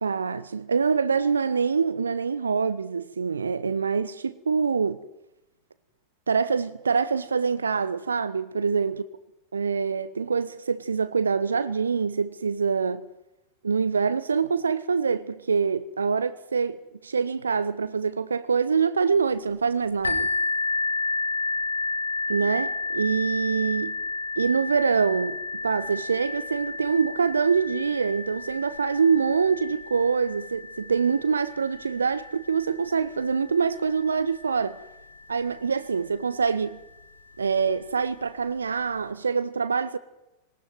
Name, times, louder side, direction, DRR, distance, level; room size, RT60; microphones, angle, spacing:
voice 1, 0.0-5.0 6.3-9.0 9.5-13.0 13.6-16.8 17.0-20.3 22.3-24.0 24.4-34.8 35.3-36.8 37.4-40.0, right 5 dB, 75° right, 0.8 m, -25 dB
sound 1, 20.0-35.6 36.4-36.5 37.0-37.1, left 3 dB, 75° left, 2.2 m, -32 dB
20.5 x 19.5 x 9.3 m
figure-of-eight pair, 90°, 0 cm